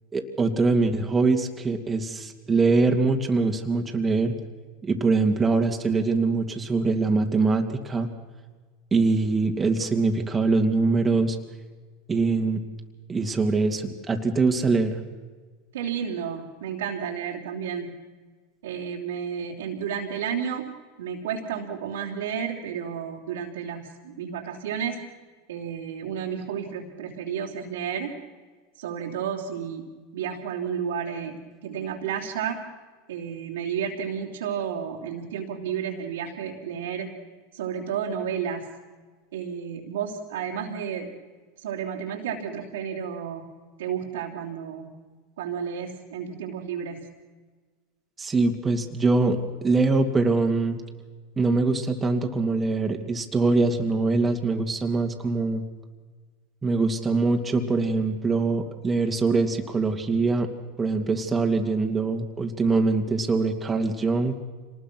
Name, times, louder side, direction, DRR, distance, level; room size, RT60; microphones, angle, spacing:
voice 1, 0.1-4.3 4.8-8.1 8.9-11.4 12.1-12.6 13.1-15.0 48.2-50.8 51.4-55.6 56.6-60.5 60.8-64.4, right 3 dB, 20° right, 4 dB, 2.6 m, -23 dB
voice 2, 15.7-17.9 18.6-20.7 21.0-25.0 25.5-28.1 28.8-29.8 30.1-32.6 33.1-37.1 37.5-38.7 39.3-41.1 41.6-43.4 43.8-44.9 45.4-47.1, right 8 dB, 80° right, -3 dB, 3.2 m, -32 dB
26.0 x 20.0 x 6.2 m, 1.4 s
hypercardioid pair, 100°, 0 cm